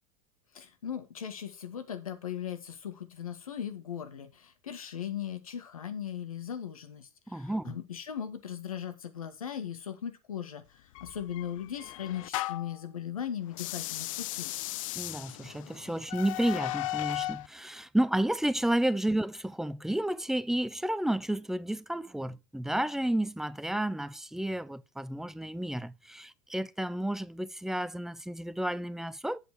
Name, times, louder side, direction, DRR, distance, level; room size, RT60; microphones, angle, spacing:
voice 1, 0.5-14.5, left 9 dB, 85° left, 1.8 m, -38 dB
voice 2, 7.3-7.8 14.9-29.4, right 1 dB, ahead, 0.6 m, -31 dB
sound 1, 11.0-12.8 13.5-17.5, left 16 dB, 70° left, 0.4 m, -36 dB
8.2 x 7.7 x 4.7 m
hypercardioid pair, 85°, 18 cm